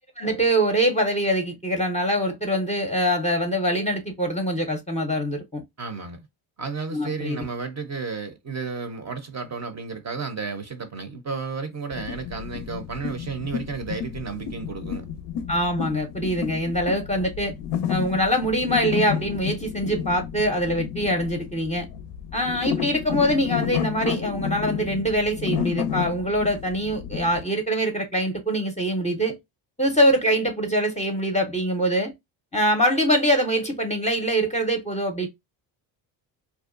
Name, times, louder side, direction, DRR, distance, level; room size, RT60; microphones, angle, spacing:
voice 1, 0.2-5.6 6.9-7.5 15.5-17.5 17.9-21.9 22.3-29.4 29.8-32.1 32.5-35.3, equal, 15° left, 0.6 m, -24 dB
voice 2, 5.8-6.3 6.6-15.1, right 5 dB, 35° right, 0.6 m, -32 dB
sound 1, 11.9-27.4, left 8 dB, 60° left, 0.5 m, -31 dB
2.6 x 2.2 x 2.4 m
supercardioid pair, 70°, 50 cm